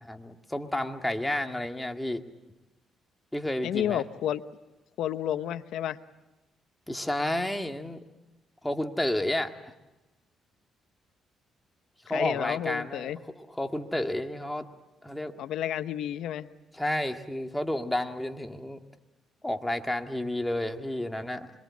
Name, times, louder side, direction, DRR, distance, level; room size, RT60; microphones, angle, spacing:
voice 1, 0.0-2.2 3.3-4.0 6.9-8.0 8.6-9.7 12.1-14.7 15.0-15.4 16.7-18.8 19.4-21.5, left 1 dB, 5° left, 5 dB, 1.9 m, -31 dB
voice 2, 3.6-4.4 5.0-6.0 12.1-13.2 15.4-16.5, left 11 dB, 80° left, 12 dB, 0.8 m, -31 dB
26.5 x 22.5 x 8.5 m, 1.1 s
cardioid pair, 90°, 0 cm